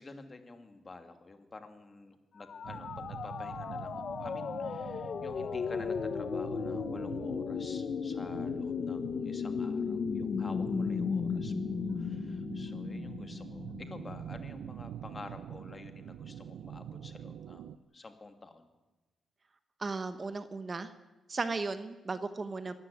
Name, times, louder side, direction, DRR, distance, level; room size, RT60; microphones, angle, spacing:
voice 1, 0.0-18.7, left 3 dB, 25° left, 7 dB, 2.6 m, -50 dB
sound 1, 2.4-14.2, left 6 dB, 50° left, 0.9 m, -35 dB
sound 2, 2.6-17.8, right 10 dB, 85° right, 0.6 m, -45 dB
voice 2, 19.8-20.9 21.3-22.7, right 3 dB, 30° right, 10 dB, 1.2 m, -35 dB
23.5 x 14.0 x 9.5 m, 1.2 s
cardioid pair, 115°, 0 cm